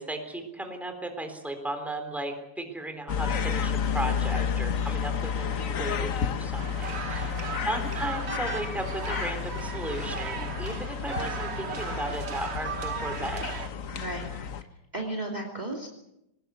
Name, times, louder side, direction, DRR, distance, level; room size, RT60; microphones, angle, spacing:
voice 1, 0.0-7.4 7.6-13.5, right 1 dB, ahead, 5 dB, 3.4 m, -35 dB
sound 1, 3.1-14.6, left 7 dB, 50° left, 1.3 m, -31 dB
sound 2, 6.6-13.7, right 7 dB, 45° right, 1.0 m, -37 dB
voice 2, 7.2-7.6 13.9-14.3 14.9-15.9, right 1 dB, 20° right, 1 dB, 2.9 m, -35 dB
22.5 x 20.0 x 8.1 m, 0.84 s
omnidirectional pair, 2.1 m